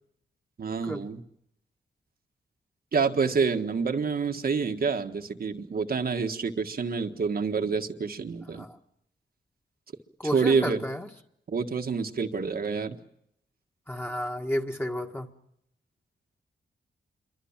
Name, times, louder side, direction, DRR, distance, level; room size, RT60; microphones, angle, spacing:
voice 1, 0.6-1.2 2.9-8.6 10.3-10.9 11.5-13.0, right 5 dB, 50° right, 6 dB, 1.7 m, -27 dB
voice 2, 10.2-11.1 13.9-15.3, equal, 10° left, 2 dB, 1.7 m, -31 dB
27.5 x 23.5 x 7.4 m, 0.77 s
wide cardioid pair, 110°, 20 cm